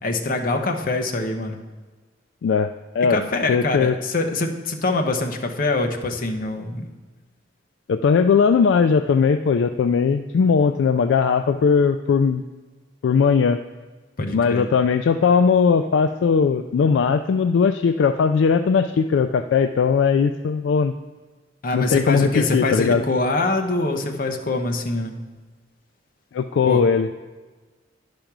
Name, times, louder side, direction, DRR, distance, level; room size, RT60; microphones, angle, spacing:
voice 1, 0.0-1.6 3.1-6.9 14.2-14.6 21.6-25.2 26.7-26.8, left 2 dB, 50° left, 4 dB, 0.9 m, -24 dB
voice 2, 2.4-3.2 3.5-4.0 7.9-12.4 13.0-13.6 14.3-20.9 21.7-23.0 26.3-27.3, left 5 dB, 70° left, 9 dB, 0.3 m, -19 dB
10.5 x 5.1 x 6.0 m, 1.3 s
head